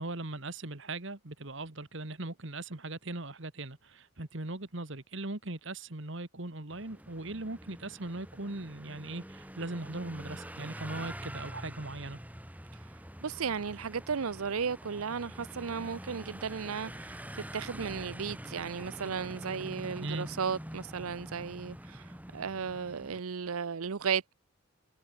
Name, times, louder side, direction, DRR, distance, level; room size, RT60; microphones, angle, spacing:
voice 1, 0.0-12.2 20.0-20.3, right 2 dB, 60° right, 1.8 m, -39 dB
sound 1, 6.7-23.2, equal, 5° right, 4.4 m, -45 dB
voice 2, 13.2-24.3, right 6 dB, 85° right, 0.7 m, -35 dB
head